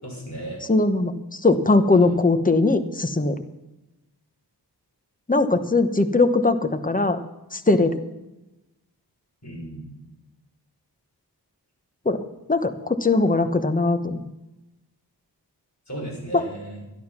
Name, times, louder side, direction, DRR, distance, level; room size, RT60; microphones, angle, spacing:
voice 1, 0.0-0.6 1.9-2.1 9.4-9.9 15.9-16.8, right 1 dB, 40° left, -1 dB, 6.0 m, -35 dB
voice 2, 0.7-3.4 5.3-7.2 7.5-8.0 12.0-12.2 12.5-14.2 16.3-16.4, left 3 dB, 20° left, 9 dB, 1.1 m, -20 dB
12.0 x 11.5 x 5.9 m, 0.98 s
wide cardioid pair, 65°, 41 cm